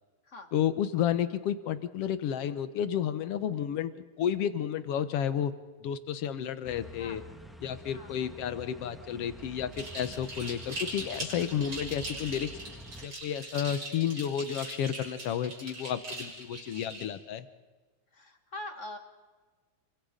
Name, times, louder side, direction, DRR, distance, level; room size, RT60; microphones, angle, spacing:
voice 1, 0.5-5.5 5.8-7.2 7.6-12.5 13.0-17.5, left 9 dB, 65° left, 12 dB, 1.7 m, -31 dB
sound 1, 6.6-13.1, right 1 dB, ahead, 0.6 m, -48 dB
voice 2, 7.9-8.3 10.4-10.5 16.7-16.8 18.1-19.0, left 2 dB, 35° left, 6 dB, 1.3 m, -44 dB
sound 2, 9.7-17.1, right 2 dB, 40° right, 7.4 m, -41 dB
29.0 x 24.0 x 5.1 m, 1.3 s
omnidirectional pair, 3.5 m